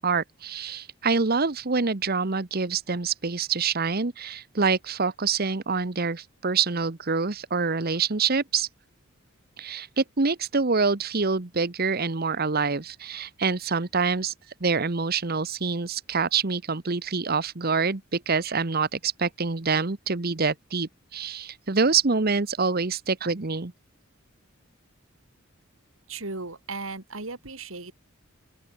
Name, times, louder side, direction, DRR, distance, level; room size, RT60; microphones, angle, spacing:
voice 1, 0.0-8.7 9.6-14.3 14.6-23.7, right 4 dB, 45° right, 1.1 m, -26 dB
voice 2, 26.1-27.9, right 3 dB, 75° right, 3.0 m, -36 dB
open air
head